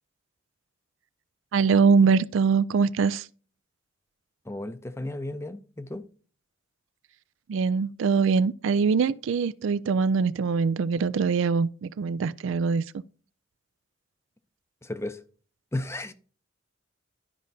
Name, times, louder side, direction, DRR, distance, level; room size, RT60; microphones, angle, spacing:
voice 1, 1.5-3.3 7.5-13.0, right 5 dB, 70° right, 0.4 m, -23 dB
voice 2, 4.5-6.0 14.8-15.2 15.7-16.1, left 1 dB, 15° left, 0.6 m, -34 dB
12.5 x 5.1 x 2.7 m
head